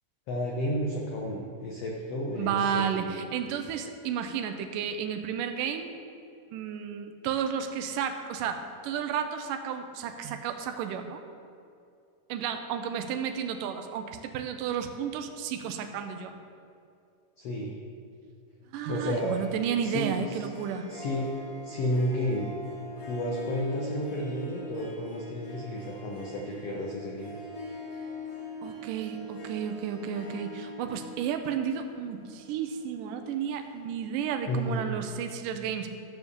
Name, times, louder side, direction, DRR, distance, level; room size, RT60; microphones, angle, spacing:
voice 1, 0.3-3.1 17.4-17.8 18.9-19.3 19.8-20.5 20.9-21.3 21.6-22.5 23.1-27.3 34.5-34.9, left 1 dB, 70° left, -2 dB, 1.5 m, -32 dB
voice 2, 2.4-5.9 6.5-11.2 12.3-16.3 18.7-20.9 28.6-35.9, right 8 dB, 80° right, 7 dB, 2.1 m, -32 dB
Harp, 18.9-34.2, equal, 45° left, 3.5 m, -43 dB
13.0 x 4.8 x 6.8 m, 2.5 s
omnidirectional pair, 4.2 m